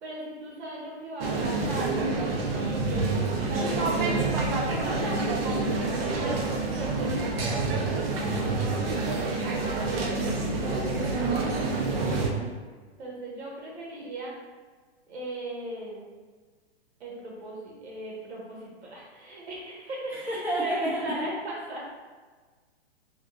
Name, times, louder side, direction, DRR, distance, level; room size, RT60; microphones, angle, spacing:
voice 1, 0.0-5.2 6.0-8.6 13.0-14.3 15.1-16.1 17.0-21.8, right 1 dB, 80° right, -4 dB, 1.4 m, -38 dB
sound 1, 1.2-12.3, right 3 dB, 60° right, 0.6 m, -27 dB
voice 2, 11.1-11.6 12.1-12.5 20.1-21.3, right 2 dB, 5° right, -7 dB, 0.5 m, -31 dB
3.6 x 2.5 x 2.4 m, 1.4 s
hypercardioid pair, 145°, 33 cm